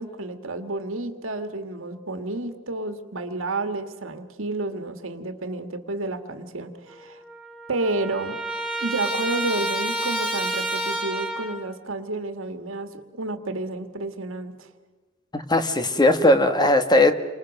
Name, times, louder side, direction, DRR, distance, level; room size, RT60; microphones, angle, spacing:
voice 1, 0.0-7.2 7.7-8.4 8.8-14.7, right 2 dB, 70° right, 8 dB, 1.9 m, -30 dB
Trumpet, 6.9-7.0 7.2-11.7, right 1 dB, 5° left, 4.2 m, -29 dB
voice 2, 15.3-17.1, left 1 dB, 20° left, 9 dB, 1.4 m, -18 dB
29.5 x 25.5 x 6.5 m, 1.4 s
head